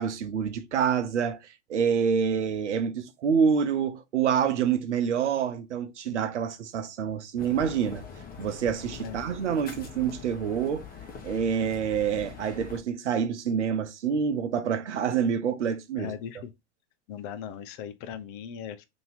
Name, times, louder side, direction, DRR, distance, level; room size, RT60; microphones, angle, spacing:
voice 1, 0.0-8.0 8.4-10.8 11.2-16.1, right 7 dB, 85° right, 0.7 m, -27 dB
sound 1, 7.4-12.8, left 7 dB, 25° left, 1.0 m, -43 dB
voice 2, 16.0-16.5 17.1-18.8, left 8 dB, 50° left, 0.6 m, -38 dB
2.9 x 2.8 x 3.9 m
hypercardioid pair, 95°, 34 cm